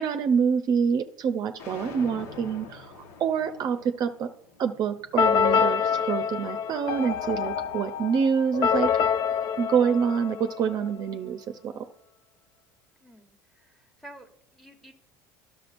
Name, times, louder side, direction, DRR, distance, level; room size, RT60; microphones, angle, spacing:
voice 1, 0.0-2.9 3.2-4.3 4.6-8.9 9.6-11.9, right 7 dB, 45° right, 7 dB, 0.6 m, -26 dB
sound 1, 1.6-7.7, left 4 dB, 85° left, 1.2 m, -47 dB
sound 2, 5.2-10.9, left 7 dB, 55° left, 0.5 m, -26 dB
voice 2, 13.0-14.9, right 1 dB, ahead, 5 dB, 1.2 m, -51 dB
11.5 x 6.7 x 2.5 m, 0.65 s
supercardioid pair, 100°, 9 cm